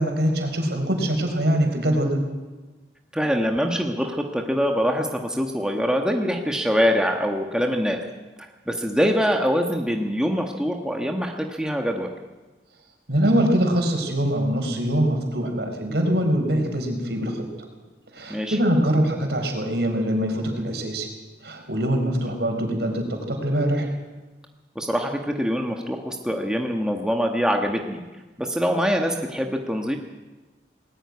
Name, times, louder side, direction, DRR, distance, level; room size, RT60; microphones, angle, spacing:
voice 1, 0.0-2.2 13.1-17.3 18.1-21.1 21.4-23.9, equal, 65° right, 4 dB, 4.6 m, -23 dB
voice 2, 3.1-8.0 8.7-12.1 18.3-18.6 22.2-22.4 24.7-28.0 28.4-30.0, equal, 5° right, 2 dB, 1.3 m, -24 dB
19.5 x 14.0 x 9.6 m, 1.2 s
head